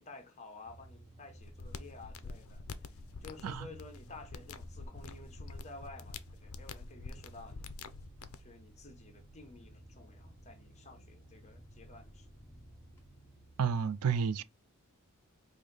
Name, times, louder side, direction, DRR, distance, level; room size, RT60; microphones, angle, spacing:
voice 1, 0.0-2.7 3.2-7.6 8.4-12.3, left 3 dB, 30° left, 0.9 m, -52 dB
sound 1, 0.6-13.7, right 1 dB, 10° left, 1.1 m, -55 dB
sound 2, 1.4-8.4, left 4 dB, 70° left, 0.5 m, -47 dB
voice 2, 13.6-14.4, right 6 dB, 85° right, 0.4 m, -31 dB
4.9 x 2.6 x 3.8 m
head